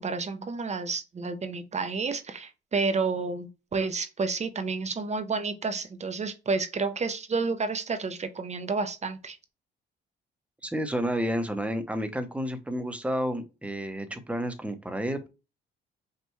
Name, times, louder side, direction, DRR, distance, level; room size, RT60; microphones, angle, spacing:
voice 1, 0.0-9.4, right 4 dB, 35° right, 0.8 m, -30 dB
voice 2, 10.6-15.3, equal, 5° right, 1.0 m, -30 dB
5.5 x 2.5 x 3.1 m
cardioid pair, 90°, 20 cm